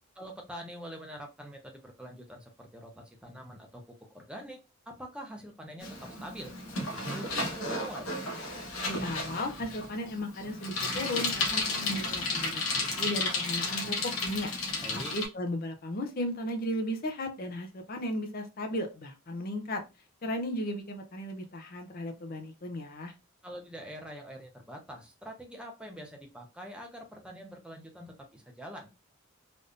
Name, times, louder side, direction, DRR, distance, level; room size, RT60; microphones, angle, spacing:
voice 1, 0.2-4.6 4.9-6.5 6.8-8.1 14.8-15.1 23.4-28.9, equal, 5° right, 1 dB, 0.6 m, -45 dB
Bicycle, 5.8-15.2, left 3 dB, 70° left, 0.9 m, -33 dB
voice 2, 8.9-14.5 14.9-19.8 20.2-23.1, left 1 dB, 40° left, 5 dB, 0.5 m, -35 dB
3.4 x 2.6 x 2.5 m, 0.27 s
head